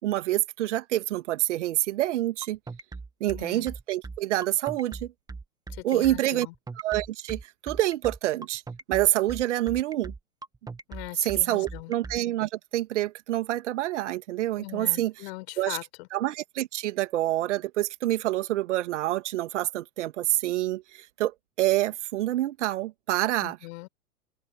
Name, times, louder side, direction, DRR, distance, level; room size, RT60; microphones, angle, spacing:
voice 1, 0.0-2.6 3.2-5.1 5.8-6.5 6.8-8.6 8.9-10.1 11.2-15.1 15.6-15.8 16.1-23.6, right 14 dB, 55° right, 2.7 m, -27 dB
sound 1, 2.4-12.2, right 4 dB, 10° right, 2.2 m, -39 dB
voice 2, 3.3-3.7 5.7-6.5 10.9-11.9 14.6-16.1 23.4-23.9, left 22 dB, 45° left, 5.9 m, -40 dB
open air
figure-of-eight pair, 100°, 43 cm